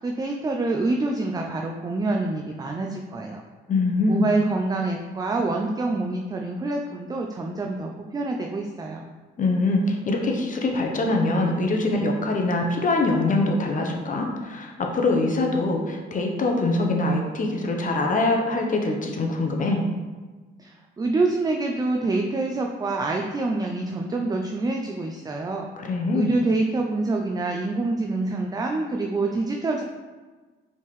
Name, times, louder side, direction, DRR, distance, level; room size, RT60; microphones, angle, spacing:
voice 1, 0.0-3.4 4.1-9.1 20.6-25.7 26.1-29.8, right 2 dB, 20° right, 2 dB, 0.4 m, -26 dB
voice 2, 3.7-4.3 9.4-19.8 25.8-26.3, left 2 dB, 40° left, 2 dB, 0.8 m, -23 dB
4.3 x 3.6 x 3.2 m, 1.3 s
cardioid pair, 90°, 20 cm